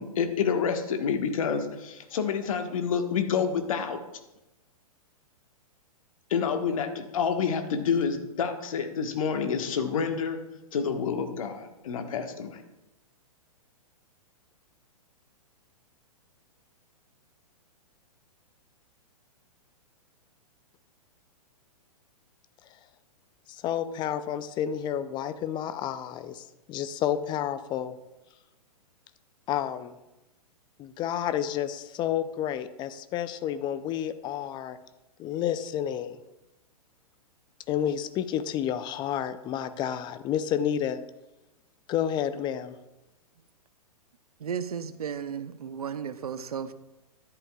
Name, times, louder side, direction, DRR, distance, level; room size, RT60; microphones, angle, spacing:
voice 1, 0.0-4.0 6.3-10.4 10.7-12.6, left 6 dB, 60° left, 6 dB, 1.4 m, -28 dB
voice 2, 23.5-28.0 29.5-29.9 30.8-34.8 35.2-36.2 37.7-41.0 41.9-42.8, left 10 dB, 25° left, 13 dB, 0.5 m, -30 dB
voice 3, 44.4-46.7, right 7 dB, 75° right, 12 dB, 0.7 m, -34 dB
13.0 x 11.0 x 2.3 m, 0.96 s
figure-of-eight pair, 115°, 19 cm